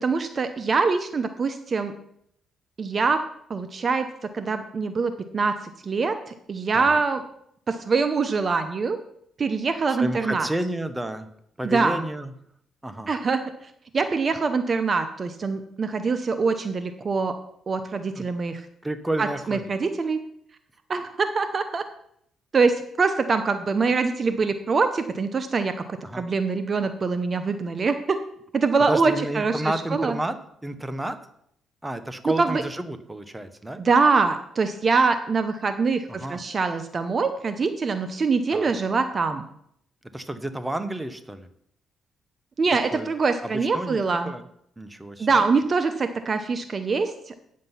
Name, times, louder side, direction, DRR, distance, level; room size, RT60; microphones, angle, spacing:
voice 1, 0.0-1.9 2.8-4.1 4.3-5.6 5.8-7.2 7.7-9.0 9.4-10.5 11.6-12.0 13.1-17.4 17.7-18.7 19.2-20.2 20.9-21.8 22.5-28.2 28.5-30.2 32.4-32.6 33.8-39.5 42.6-44.3 45.2-47.3, right 4 dB, 40° right, 9 dB, 0.8 m, -24 dB
voice 2, 10.0-11.3 11.6-12.3 12.8-13.1 18.2-18.3 18.8-19.6 26.0-26.2 28.9-30.4 30.6-31.2 31.8-33.8 36.1-36.4 38.5-38.7 40.1-41.5 42.9-43.1 43.4-44.0 44.2-44.4 44.8-45.3, right 1 dB, 10° right, 10 dB, 1.0 m, -30 dB
9.2 x 7.4 x 5.7 m, 0.71 s
cardioid pair, 90°, 0 cm